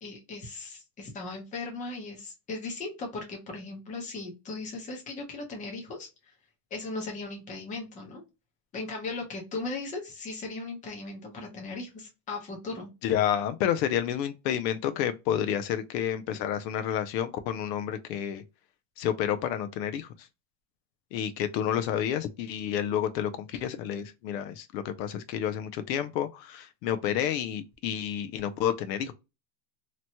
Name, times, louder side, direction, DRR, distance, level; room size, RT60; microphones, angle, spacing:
voice 1, 0.0-6.1 6.7-8.2 8.7-12.9, left 3 dB, 15° left, 0.7 m, -37 dB
voice 2, 13.0-18.4 19.0-20.1 21.1-29.1, left 10 dB, 80° left, 0.6 m, -30 dB
3.0 x 2.2 x 2.8 m
supercardioid pair, 165°, 50 cm